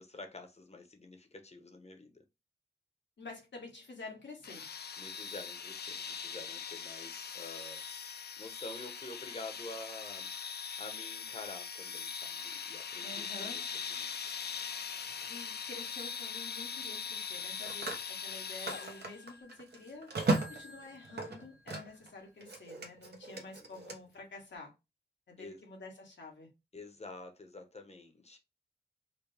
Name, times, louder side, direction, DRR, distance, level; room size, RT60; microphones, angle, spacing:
voice 1, 0.0-2.2 5.0-7.8 8.4-10.3 10.8-14.1 23.3-23.7 25.4-25.6 26.7-28.4, left 2 dB, 35° left, 0.9 m, -48 dB
voice 2, 3.2-4.7 13.0-13.7 15.3-20.1 20.5-24.7 25.3-26.5, left 3 dB, 90° left, 1.5 m, -49 dB
sound 1, 4.4-19.2, left 6 dB, 65° left, 0.4 m, -41 dB
Telephone, 15.1-15.3 17.2-22.1 22.4-24.0, right 2 dB, 65° right, 1.0 m, -37 dB
4.7 x 2.3 x 3.4 m
cardioid pair, 60°, 18 cm